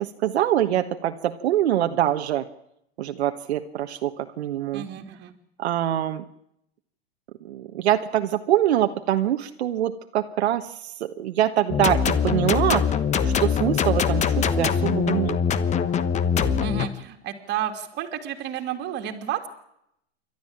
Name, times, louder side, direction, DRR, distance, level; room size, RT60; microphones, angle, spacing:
voice 1, 0.0-2.4 3.0-4.9 5.6-6.2 7.4-12.8 13.2-15.4, right 12 dB, 75° right, 6 dB, 1.4 m, -24 dB
voice 2, 4.7-5.3 16.6-19.5, right 10 dB, 30° right, 6 dB, 2.7 m, -31 dB
sound 1, 11.7-16.9, left 7 dB, 20° left, 1.1 m, -23 dB
28.0 x 12.5 x 8.8 m, 0.78 s
hypercardioid pair, 135°, 33 cm